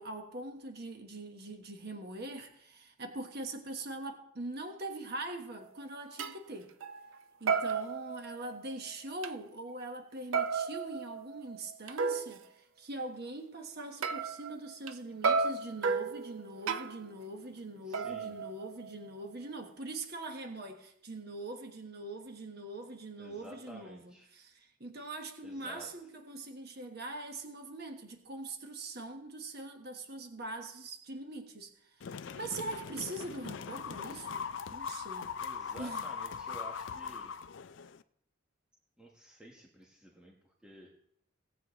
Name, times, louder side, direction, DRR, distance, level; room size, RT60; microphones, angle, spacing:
voice 1, 0.0-6.7 7.4-34.4 34.7-35.3 35.8-36.1, right 2 dB, 50° right, 4 dB, 1.3 m, -42 dB
sound 1, 5.6-5.7 6.2-6.4 6.8-7.2 7.5-8.8 9.2-9.3 10.3-12.4 14.0-14.9 15.2-17.1 17.9-19.1, right 5 dB, 70° right, 0.5 m, -33 dB
voice 2, 17.8-18.3 23.2-24.3 25.4-25.9 35.4-37.3 39.0-40.3 40.6-40.9, equal, 5° right, -2 dB, 1.2 m, -51 dB
sound 2, 32.0-38.0, left 6 dB, 60° left, 0.4 m, -41 dB
18.0 x 8.1 x 3.1 m, 0.71 s
head